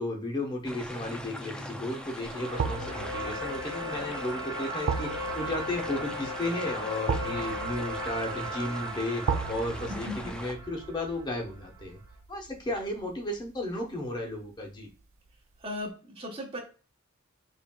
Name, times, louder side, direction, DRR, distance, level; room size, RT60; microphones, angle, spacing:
voice 1, 0.0-12.0 12.3-14.9, left 1 dB, 20° left, 0 dB, 0.9 m, -34 dB
sound 1, 0.6-10.5, left 1 dB, 5° left, 0.3 m, -41 dB
sound 2, 0.8-1.2 2.6-13.6 13.9-14.1, right 5 dB, 70° right, 0.4 m, -37 dB
sound 3, 1.7-11.8, equal, 85° right, 1.4 m, -38 dB
voice 2, 15.6-16.6, left 1 dB, 25° right, -1 dB, 1.0 m, -37 dB
4.4 x 3.1 x 2.3 m, 0.35 s
head